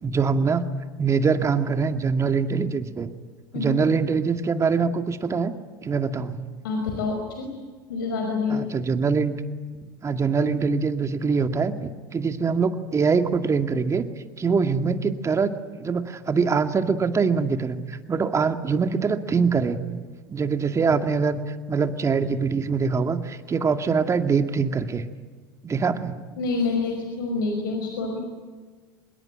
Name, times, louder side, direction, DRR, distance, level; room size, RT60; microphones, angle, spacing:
voice 1, 0.0-0.6 1.0-3.1 3.5-5.5 5.8-6.4 8.5-9.3 10.0-14.0 14.4-15.5 15.8-19.8 20.3-25.0 25.6-26.2, right 5 dB, 25° right, 8 dB, 2.2 m, -23 dB
voice 2, 6.6-7.5 7.9-8.6 26.4-28.2, left 4 dB, 75° left, 2 dB, 5.3 m, -27 dB
25.0 x 21.5 x 9.1 m, 1.4 s
hypercardioid pair, 80°, 11 cm